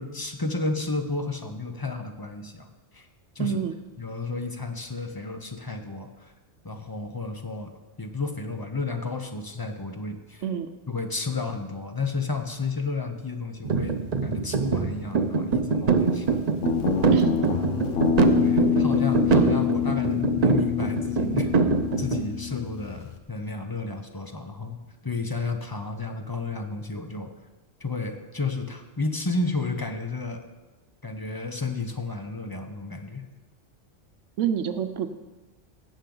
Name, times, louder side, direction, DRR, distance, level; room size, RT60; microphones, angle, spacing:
voice 1, 0.0-2.7 2.9-3.1 3.4-3.6 4.0-6.3 6.6-10.4 10.9-16.4 18.4-21.5 22.0-27.3 27.8-30.5 31.0-33.3, left 3 dB, 20° left, 5 dB, 0.7 m, -32 dB
voice 2, 3.4-3.8 10.4-10.7 17.1-17.3 34.4-35.1, right 9 dB, 85° right, 9 dB, 1.0 m, -26 dB
sound 1, 13.6-22.2, right 4 dB, 45° right, 0.6 m, -24 dB
Guitar, 16.6-23.2, left 9 dB, 85° left, 1.2 m, -26 dB
16.0 x 7.3 x 3.8 m, 1.2 s
omnidirectional pair, 1.2 m